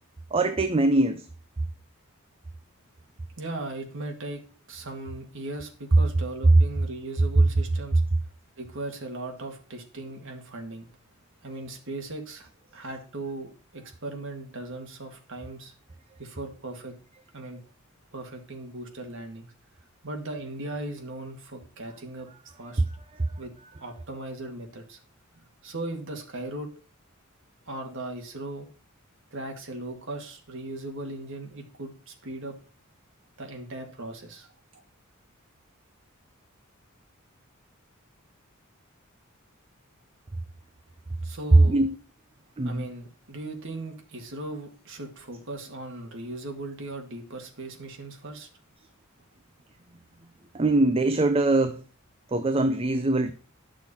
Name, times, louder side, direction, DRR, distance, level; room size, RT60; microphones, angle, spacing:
voice 1, 0.3-1.3 23.2-23.3 41.7-41.9 42.6-42.9 50.5-51.8 52.3-53.3, right 2 dB, 25° right, 0.5 m, -23 dB
voice 2, 3.4-4.4 4.7-8.0 8.6-10.9 11.4-15.7 16.2-16.9 17.3-17.6 18.1-19.5 20.0-22.3 22.6-22.8 23.4-23.5 23.8-25.0 25.4-26.7 27.7-28.7 29.3-32.5 33.4-34.5 41.2-41.8 42.6-48.5, right 2 dB, 65° right, 1.9 m, -38 dB
11.5 x 6.3 x 4.2 m
head